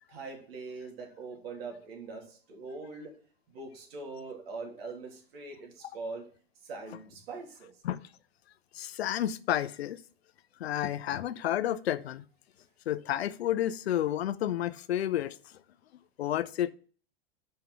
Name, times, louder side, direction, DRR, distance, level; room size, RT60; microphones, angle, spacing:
voice 1, 0.1-3.2 3.5-6.3 6.6-7.8, right 3 dB, 75° right, 3.0 m, -42 dB
voice 2, 8.7-10.0 10.6-12.2 12.9-15.4 16.2-16.7, left 12 dB, 85° left, 0.6 m, -30 dB
5.7 x 5.3 x 5.6 m
hypercardioid pair, 110°, 31 cm